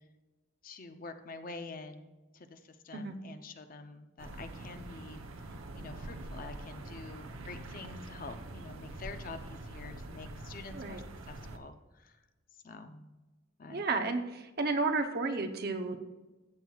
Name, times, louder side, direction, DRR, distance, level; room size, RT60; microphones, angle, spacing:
voice 1, 0.6-12.2 12.6-13.1 13.6-13.8, left 3 dB, 45° left, 8 dB, 0.6 m, -47 dB
sound 1, 4.2-11.6, right 2 dB, 85° right, 0.9 m, -45 dB
voice 2, 13.7-16.0, right 3 dB, 50° right, 6 dB, 0.8 m, -32 dB
14.0 x 7.7 x 2.4 m, 1.2 s
head